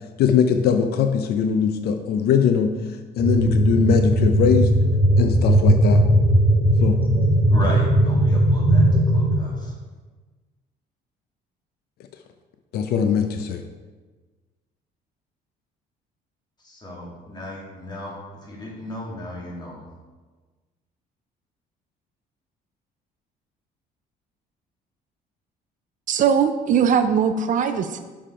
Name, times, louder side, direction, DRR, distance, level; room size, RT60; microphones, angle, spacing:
voice 1, 0.2-2.7 3.2-4.7 5.2-6.0 6.8-7.0 12.7-13.6, left 7 dB, 70° left, 7 dB, 0.6 m, -20 dB
sound 1, 3.2-9.3, right 1 dB, 10° right, 1.5 m, -18 dB
voice 2, 7.5-9.7 16.6-19.9, left 1 dB, 25° left, -3 dB, 2.2 m, -35 dB
voice 3, 26.1-28.0, right 7 dB, 50° right, 9 dB, 0.5 m, -20 dB
6.7 x 5.6 x 4.9 m, 1.3 s
cardioid pair, 130°, 17 cm